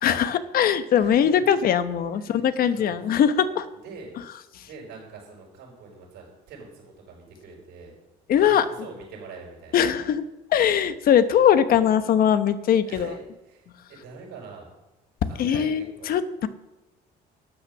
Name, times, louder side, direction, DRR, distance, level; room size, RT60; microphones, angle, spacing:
voice 1, 0.0-3.6 4.6-4.7 8.3-8.6 9.7-10.2 10.5-13.1 15.4-16.5, left 9 dB, 60° left, 12 dB, 1.0 m, -21 dB
voice 2, 1.0-1.4 2.1-3.2 3.8-4.1 4.6-8.0 8.4-9.8 12.8-13.2 13.4-14.7 15.3-16.2, right 4 dB, 85° right, 0 dB, 5.7 m, -44 dB
12.5 x 8.4 x 7.2 m, 1.0 s
cardioid pair, 110°, 17 cm